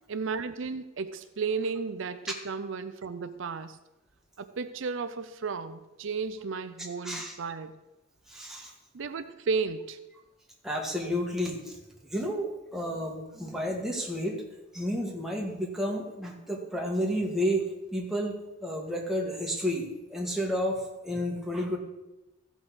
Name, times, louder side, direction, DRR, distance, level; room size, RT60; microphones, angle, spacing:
voice 1, 0.1-3.8 4.4-7.8 8.9-10.0, right 5 dB, 65° right, 11 dB, 0.5 m, -33 dB
voice 2, 7.0-7.4 8.3-8.7 10.6-11.8 12.0-14.4 14.7-17.6 17.9-18.3 18.6-21.8, equal, ahead, -1 dB, 1.6 m, -31 dB
15.0 x 5.4 x 6.2 m, 1.0 s
head